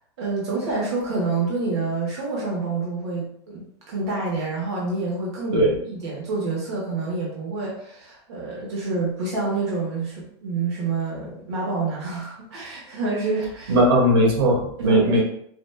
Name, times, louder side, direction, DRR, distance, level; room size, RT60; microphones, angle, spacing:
voice 1, 0.2-13.8 14.8-15.2, right 3 dB, 90° right, -4 dB, 1.0 m, -28 dB
voice 2, 13.7-15.2, right 1 dB, 70° right, -2 dB, 1.2 m, -18 dB
4.7 x 2.2 x 2.2 m, 0.69 s
supercardioid pair, 160°, 14 cm